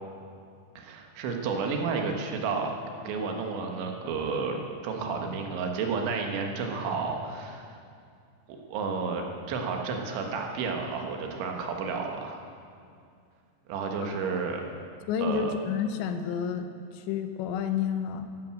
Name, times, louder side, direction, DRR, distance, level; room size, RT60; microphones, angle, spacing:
voice 1, 0.8-2.7 3.1-4.6 4.8-7.7 8.5-12.4 13.7-14.6 15.2-15.5, right 5 dB, 85° right, 3 dB, 3.7 m, -31 dB
voice 2, 15.1-16.7 16.9-18.3, left 7 dB, 80° left, 7 dB, 3.0 m, -29 dB
12.5 x 12.0 x 7.7 m, 2.3 s
omnidirectional pair, 5.3 m